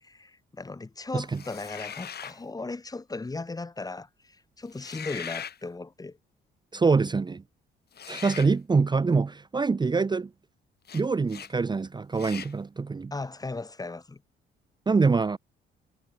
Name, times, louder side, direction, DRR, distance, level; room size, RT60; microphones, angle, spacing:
voice 1, 0.0-6.2 13.1-14.2, left 3 dB, 20° left, 1.2 m, -37 dB
sound 1, 1.3-2.4 4.7-5.6 7.9-8.5 10.9-11.0 11.3-11.5 12.1-12.5, left 8 dB, 55° left, 2.9 m, -40 dB
voice 2, 6.7-7.4 8.1-10.3 10.9-13.1 14.9-15.4, right 4 dB, 20° right, 0.7 m, -25 dB
cardioid pair, 90°, 20 cm